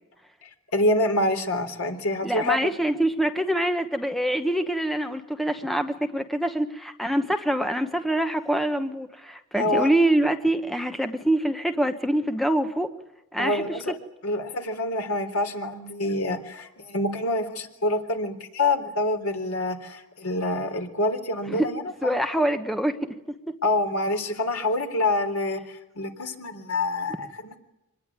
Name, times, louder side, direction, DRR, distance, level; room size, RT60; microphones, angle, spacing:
voice 1, 0.4-2.6 9.6-9.9 13.4-13.9 14.2-22.2 23.6-27.6, left 2 dB, 75° left, 5 dB, 3.6 m, -26 dB
voice 2, 2.2-12.9 13.3-13.7 21.5-21.7 22.0-23.0 23.5-23.6, right 1 dB, ahead, 7 dB, 1.1 m, -25 dB
25.5 x 19.5 x 9.7 m, 0.94 s
head